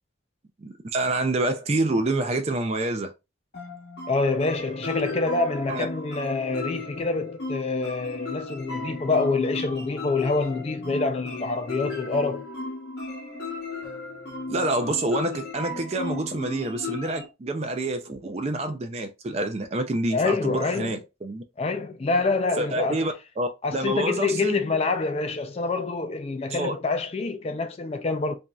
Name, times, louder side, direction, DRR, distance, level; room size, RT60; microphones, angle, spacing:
voice 1, 0.6-3.1 5.7-5.9 14.5-21.4 22.6-24.6 26.5-26.8, right 2 dB, 35° right, 0.4 m, -27 dB
sound 1, 3.5-17.3, left 3 dB, 55° left, 0.9 m, -35 dB
voice 2, 4.1-12.4 20.1-21.0 21.6-23.1 23.6-28.3, left 3 dB, 30° left, 0.4 m, -26 dB
3.0 x 2.6 x 2.3 m
head